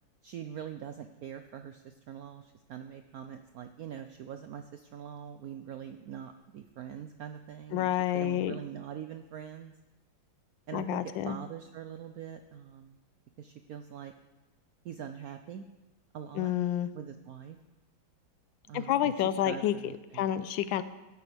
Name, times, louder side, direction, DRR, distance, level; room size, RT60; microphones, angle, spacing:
voice 1, 0.2-9.7 10.7-13.0 13.4-14.1 14.8-15.7 16.1-16.5 16.9-17.6 18.7-20.3, right 9 dB, 75° right, 8 dB, 0.8 m, -43 dB
voice 2, 7.7-8.6 10.7-11.4 16.4-16.9 18.7-19.7 20.1-20.8, left 11 dB, 80° left, 14 dB, 1.3 m, -29 dB
16.5 x 10.5 x 3.4 m, 1.1 s
omnidirectional pair, 2.1 m